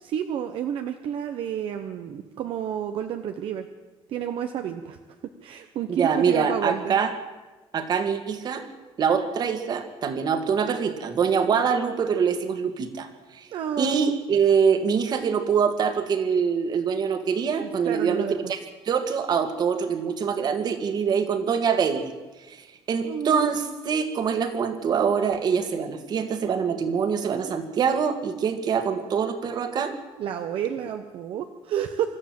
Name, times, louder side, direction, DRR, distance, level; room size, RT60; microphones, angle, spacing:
voice 1, 0.0-3.7 4.1-5.0 5.4-7.0 13.5-14.2 17.6-18.3 23.0-23.5 30.2-32.2, right 9 dB, 65° right, 6 dB, 1.1 m, -30 dB
voice 2, 5.9-7.1 7.7-8.7 9.0-13.5 13.8-18.6 18.8-22.2 22.5-30.0, right 6 dB, 45° right, 9 dB, 2.0 m, -24 dB
25.5 x 14.0 x 7.8 m, 1.2 s
cardioid pair, 165°, 10 cm